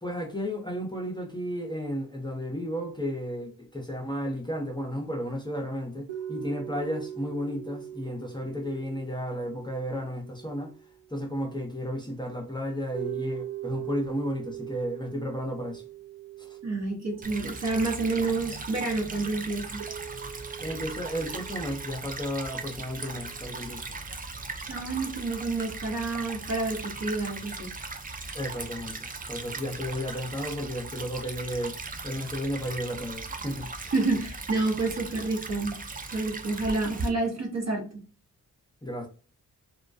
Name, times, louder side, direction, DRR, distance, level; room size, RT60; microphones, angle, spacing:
voice 1, 0.0-10.7 11.1-15.8 16.4-16.6 20.6-24.0 28.3-31.8 32.0-33.7 38.8-39.1, equal, 10° left, 0.7 m, -33 dB
sound 1, 6.1-11.5 12.9-18.4 19.8-23.6, right 12 dB, 90° right, 0.5 m, -42 dB
voice 2, 16.6-19.8 24.7-27.7 33.8-35.8 36.1-38.0, right 3 dB, 45° right, 1.0 m, -29 dB
Stream / Trickle dribble, 17.2-37.1, right 3 dB, 25° right, 0.4 m, -38 dB
2.3 x 2.1 x 2.5 m
cardioid pair, 50°, 37 cm